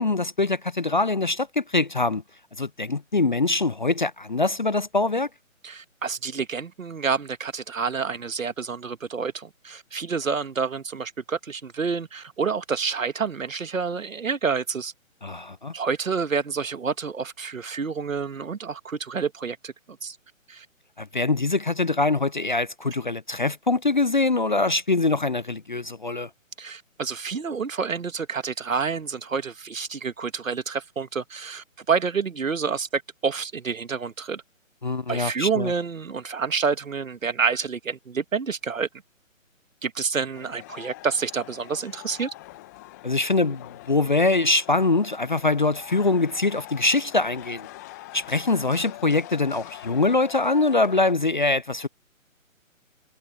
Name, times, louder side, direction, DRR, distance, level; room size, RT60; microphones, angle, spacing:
voice 1, 0.0-2.2 2.6-5.3 15.2-15.7 21.0-26.3 34.8-35.7 43.0-47.7 48.1-51.9, left 3 dB, 35° left, 0.4 m, -23 dB
voice 2, 5.6-14.9 15.7-19.7 20.0-20.2 20.5-20.7 26.6-34.4 35.1-38.9 39.8-42.3, right 5 dB, 70° right, 1.7 m, -28 dB
sound 1, 40.3-51.1, left 18 dB, 15° left, 1.0 m, -43 dB
figure-of-eight pair, 150°, 41 cm